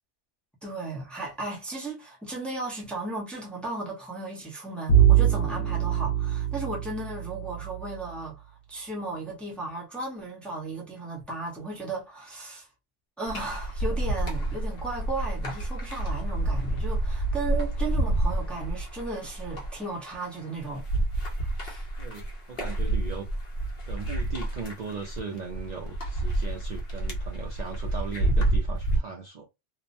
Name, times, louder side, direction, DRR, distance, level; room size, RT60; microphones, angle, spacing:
voice 1, 0.6-12.7 13.2-20.8 21.4-21.8, right 2 dB, ahead, 0.7 m, -35 dB
Bowed string instrument, 4.9-8.0, right 10 dB, 85° left, 1.0 m, -23 dB
sound 1, 13.3-29.0, right 1 dB, 60° left, 1.1 m, -29 dB
voice 2, 22.0-23.3 23.9-29.5, right 5 dB, 50° right, 0.5 m, -38 dB
2.9 x 2.0 x 2.5 m
omnidirectional pair, 1.1 m